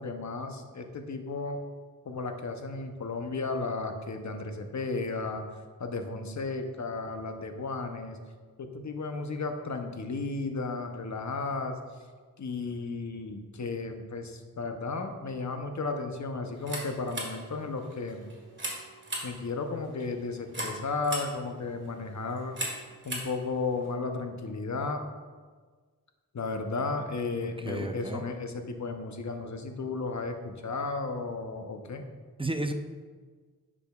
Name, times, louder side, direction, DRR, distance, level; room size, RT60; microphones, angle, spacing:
voice 1, 0.0-1.6 2.0-5.4 5.8-8.2 8.6-11.8 12.4-18.3 19.2-22.6 23.0-25.0 26.3-32.1, left 3 dB, 50° left, 5 dB, 0.8 m, -34 dB
sound 1, 16.5-23.9, right 1 dB, 35° right, 1.8 m, -40 dB
voice 2, 27.6-28.2 32.4-32.7, right 1 dB, 15° right, 6 dB, 0.5 m, -32 dB
10.0 x 5.0 x 2.4 m, 1.5 s
cardioid pair, 60°, 35 cm